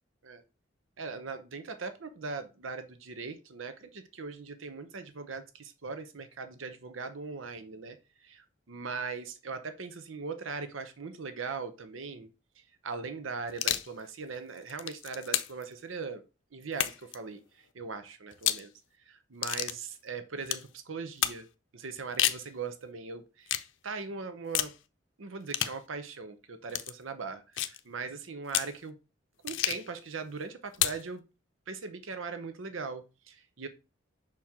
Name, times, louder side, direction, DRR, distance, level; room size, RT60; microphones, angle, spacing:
voice 1, 1.0-8.0 8.2-12.3 12.8-16.2 16.5-18.7 19.1-21.5 21.7-23.5 23.8-24.7 25.2-29.0 29.4-31.2 31.7-33.7, right 4 dB, 85° right, 0.7 m, -40 dB
sound 1, 13.5-13.9 14.6-15.6 16.7-17.2 18.3-18.7 19.4-19.8 20.5-20.7 21.2-21.4 22.0-22.5 23.5-23.7 24.5-24.8 25.5-25.8 26.7-26.9 27.6-27.8 28.5-28.7 29.5-29.9 30.7-31.0, left 12 dB, 75° left, 0.5 m, -30 dB
6.2 x 4.4 x 3.5 m
head